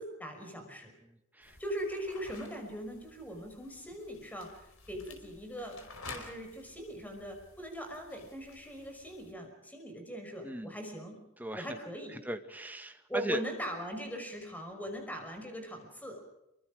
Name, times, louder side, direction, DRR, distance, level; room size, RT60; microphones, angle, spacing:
voice 1, 0.0-0.9 1.6-11.2 11.6-12.1 13.1-16.2, equal, 10° left, 4 dB, 5.7 m, -41 dB
voice 2, 1.0-1.6 10.4-10.7 11.4-11.8 12.1-13.4, right 1 dB, 10° right, 6 dB, 1.8 m, -39 dB
sound 1, 1.4-9.3, left 3 dB, 85° left, 4.9 m, -52 dB
28.0 x 24.0 x 5.1 m, 0.89 s
head